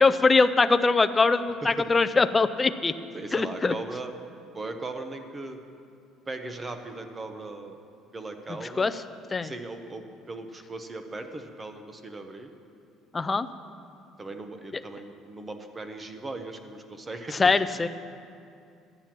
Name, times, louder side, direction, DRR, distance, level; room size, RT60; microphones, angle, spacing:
voice 1, 0.0-2.9 3.3-3.7 8.6-9.0 9.3-9.5 13.1-13.5 17.3-17.9, left 4 dB, 20° left, 11 dB, 0.4 m, -22 dB
voice 2, 3.1-4.1 4.5-5.6 6.3-7.8 8.1-8.9 9.4-12.5 14.2-17.4, right 2 dB, 20° right, 7 dB, 0.8 m, -38 dB
11.5 x 8.9 x 6.0 m, 2.4 s
cardioid pair, 140°, 0 cm